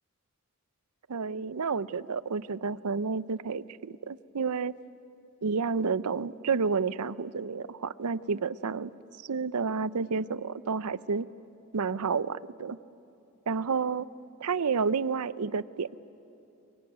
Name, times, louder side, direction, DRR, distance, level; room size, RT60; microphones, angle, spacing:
voice 1, 1.1-4.7 5.4-8.9 9.2-11.3 11.7-12.8 13.5-14.1 14.4-16.0, right 5 dB, 85° right, 16 dB, 0.6 m, -30 dB
23.5 x 23.5 x 9.4 m, 2.9 s
head